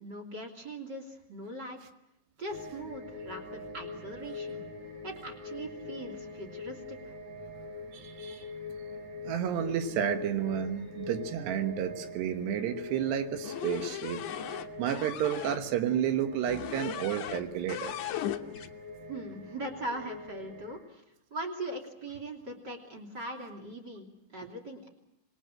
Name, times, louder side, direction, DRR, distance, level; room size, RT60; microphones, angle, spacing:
voice 1, 0.0-1.8 2.4-4.6 5.0-7.2 19.1-21.0 21.3-24.9, right 1 dB, 30° right, 5 dB, 3.0 m, -40 dB
sound 1, 2.5-20.8, left 3 dB, 45° right, 7.3 m, -43 dB
voice 2, 7.9-8.5 9.3-18.0, right 9 dB, 85° right, 9 dB, 3.6 m, -31 dB
sound 2, 13.4-15.6 16.5-17.4 17.7-18.7, left 11 dB, 70° left, 1.9 m, -37 dB
26.5 x 21.0 x 7.7 m, 0.84 s
omnidirectional pair, 4.7 m